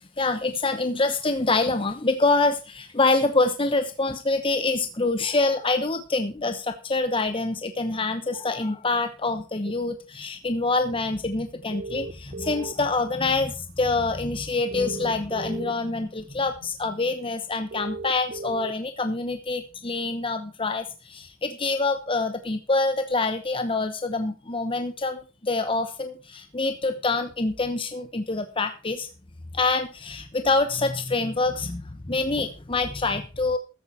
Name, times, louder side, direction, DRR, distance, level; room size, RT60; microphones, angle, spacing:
voice 1, 0.2-29.1 29.5-33.6, left 3 dB, 25° left, 8 dB, 1.0 m, -26 dB
sound 1, 9.6-9.7 11.7-12.9 14.7-15.7 17.7-18.7, right 3 dB, 50° right, 0.8 m, -36 dB
14.5 x 8.9 x 4.1 m, 0.32 s
head